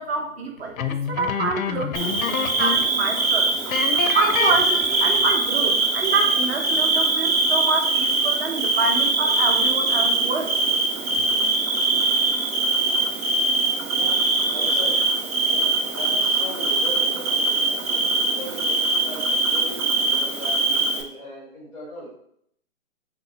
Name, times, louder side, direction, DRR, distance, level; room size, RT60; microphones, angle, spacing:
voice 1, 0.0-3.5 4.1-10.5, right 3 dB, 50° right, 3 dB, 0.7 m, -27 dB
sound 1, 0.8-3.0 3.2-3.3 3.7-5.3, left 7 dB, 85° left, 0.5 m, -28 dB
Bird / Cricket, 1.9-21.0, right 3 dB, 80° right, 0.8 m, -22 dB
voice 2, 13.9-15.0 15.5-17.7 18.4-22.1, left 1 dB, 5° right, -8 dB, 0.4 m, -38 dB
3.0 x 2.1 x 4.0 m, 0.68 s
hypercardioid pair, 145°, 40 cm